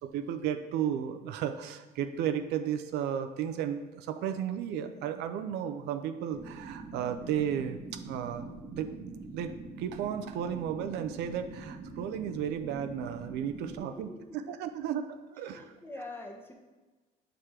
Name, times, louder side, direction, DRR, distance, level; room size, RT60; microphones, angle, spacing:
voice 1, 0.0-8.9 9.3-15.7, right 9 dB, 85° right, 8 dB, 0.4 m, -34 dB
sound 1, 6.3-13.8, right 3 dB, 40° right, 0.9 m, -44 dB
voice 2, 14.0-14.6 15.4-16.5, left 2 dB, 15° left, 2 dB, 0.9 m, -45 dB
6.8 x 3.0 x 4.7 m, 1.2 s
cardioid pair, 110°, 17 cm